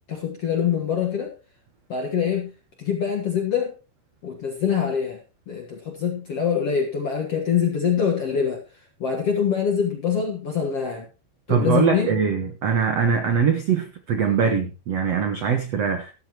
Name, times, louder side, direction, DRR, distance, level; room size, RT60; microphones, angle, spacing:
voice 1, 0.1-1.3 1.9-2.5 2.8-3.8 4.2-5.2 5.5-8.6 9.0-11.1 11.5-12.1, left 7 dB, 60° left, 1.6 m, -24 dB
voice 2, 11.5-16.1, right 6 dB, 90° right, 1.4 m, -22 dB
14.5 x 12.5 x 3.0 m
omnidirectional pair, 5.1 m